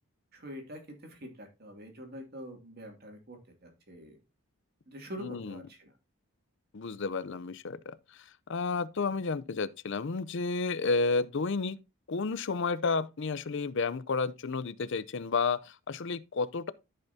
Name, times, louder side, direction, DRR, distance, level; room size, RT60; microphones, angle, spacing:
voice 1, 0.3-4.2 4.9-5.9, equal, 45° right, 2.4 m, -45 dB
voice 2, 5.2-5.6 6.7-7.9 8.5-11.8 12.1-16.7, left 4 dB, 55° left, 0.5 m, -31 dB
14.0 x 5.6 x 2.7 m
head